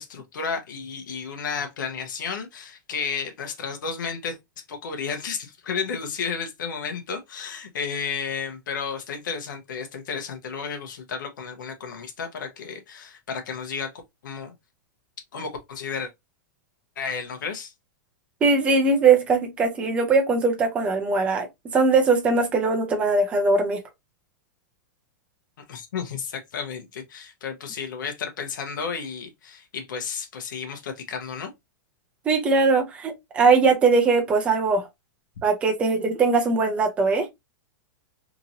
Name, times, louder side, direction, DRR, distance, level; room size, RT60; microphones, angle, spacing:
voice 1, 0.0-4.4 4.7-13.9 14.2-14.5 15.3-16.1 17.0-17.7 25.7-31.5, left 6 dB, 85° left, 0.8 m, -32 dB
voice 2, 18.4-21.5 21.7-23.8 32.3-34.8 35.4-37.3, right 4 dB, 10° right, 0.5 m, -20 dB
2.9 x 2.6 x 2.7 m
supercardioid pair, 175°, 10 cm